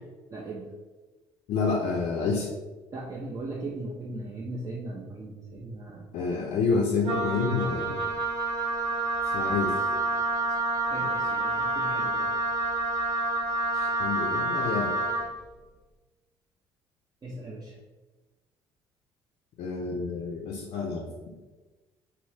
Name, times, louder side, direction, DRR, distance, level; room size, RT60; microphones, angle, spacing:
voice 1, 0.3-0.7 2.9-6.1 7.3-8.0 10.9-12.3 17.2-17.8, right 2 dB, 25° right, -3 dB, 0.5 m, -38 dB
voice 2, 1.5-2.5 6.1-8.0 9.3-9.8 13.7-14.9 19.6-21.0, left 4 dB, 50° left, -1 dB, 0.5 m, -28 dB
Wind instrument woodwind instrument, 7.0-15.3, right 2 dB, 70° right, 0.7 m, -28 dB
2.8 x 2.7 x 3.2 m, 1.2 s
figure-of-eight pair, 50°, 14 cm